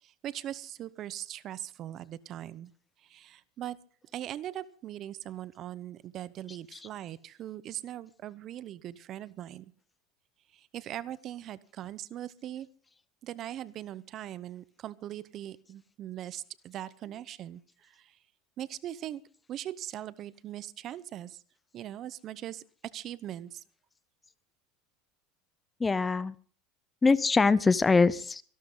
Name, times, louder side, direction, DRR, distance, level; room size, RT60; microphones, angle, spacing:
voice 1, 0.0-2.7 3.0-3.8 4.1-9.7 10.5-12.7 13.2-18.2 18.6-19.2 19.5-21.4 21.7-22.6 22.9-23.6, right 12 dB, 40° right, 18 dB, 0.8 m, -40 dB
voice 2, 6.5-6.8 25.8-26.4 27.0-28.4, left 4 dB, 15° left, 19 dB, 0.6 m, -24 dB
24.5 x 12.0 x 3.9 m, 0.43 s
supercardioid pair, 130°, 0 cm